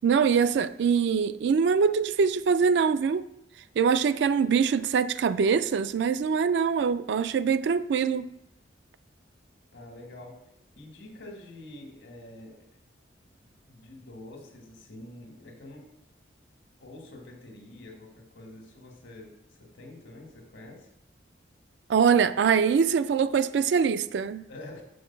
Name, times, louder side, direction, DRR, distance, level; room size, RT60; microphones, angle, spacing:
voice 1, 0.0-3.3 3.8-8.3 21.9-24.4, right 6 dB, 65° right, 13 dB, 0.3 m, -23 dB
voice 2, 9.7-10.4 10.7-12.7 13.4-15.9 16.8-20.9 24.5-24.8, left 1 dB, 75° left, 2 dB, 1.5 m, -46 dB
6.4 x 3.9 x 5.8 m, 0.84 s
head